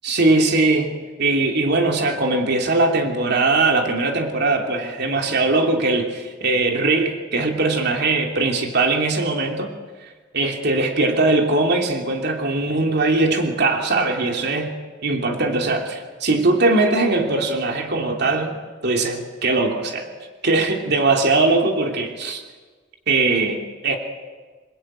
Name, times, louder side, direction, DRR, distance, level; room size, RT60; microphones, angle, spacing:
voice 1, 0.0-9.7 10.3-14.7 15.0-18.6 18.8-20.1 20.4-22.4 23.1-24.0, right 3 dB, 60° right, 2 dB, 3.0 m, -20 dB
28.0 x 22.5 x 9.1 m, 1.4 s
head